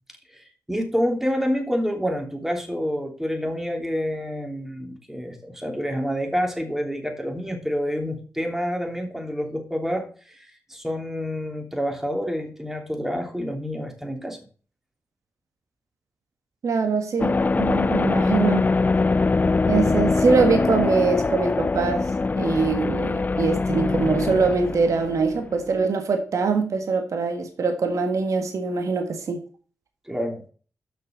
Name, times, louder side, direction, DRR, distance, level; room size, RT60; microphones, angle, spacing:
voice 1, 0.3-14.4 30.1-30.4, equal, 5° right, 3.0 m, -28 dB
voice 2, 16.6-18.7 19.7-22.1 22.4-29.4, right 4 dB, 70° right, 1.6 m, -23 dB
sound 1, 17.2-25.8, left 3 dB, 30° left, 0.4 m, -23 dB
6.7 x 6.4 x 7.4 m
supercardioid pair, 40°, 6 cm